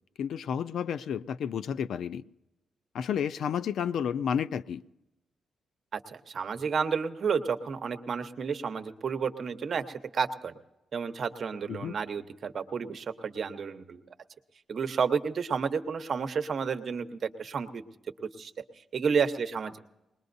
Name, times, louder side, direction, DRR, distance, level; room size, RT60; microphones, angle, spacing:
voice 1, 0.2-2.2 2.9-4.8 11.7-11.9, left 8 dB, 70° left, 0.4 m, -31 dB
voice 2, 5.9-10.5 10.9-14.0 14.7-17.8 18.4-19.8, right 6 dB, 50° right, 0.9 m, -31 dB
22.0 x 20.5 x 2.6 m
cardioid pair, 135°, 0 cm